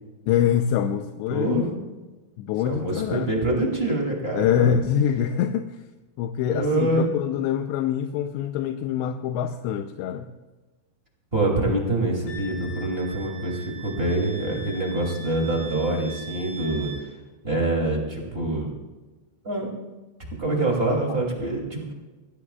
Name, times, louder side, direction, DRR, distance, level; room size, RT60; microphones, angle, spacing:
voice 1, 0.3-1.7 2.4-3.3 4.4-5.8 6.2-10.3, left 9 dB, 85° left, 7 dB, 2.9 m, -25 dB
voice 2, 1.3-1.7 2.6-4.8 6.5-7.1 11.3-16.9 17.4-18.7 19.4-19.7 20.4-21.9, right 2 dB, 15° right, -1 dB, 2.2 m, -25 dB
Wind instrument woodwind instrument, 12.3-17.1, right 1 dB, 60° left, 4.6 m, -42 dB
21.5 x 15.5 x 2.4 m, 1.2 s
omnidirectional pair, 5.0 m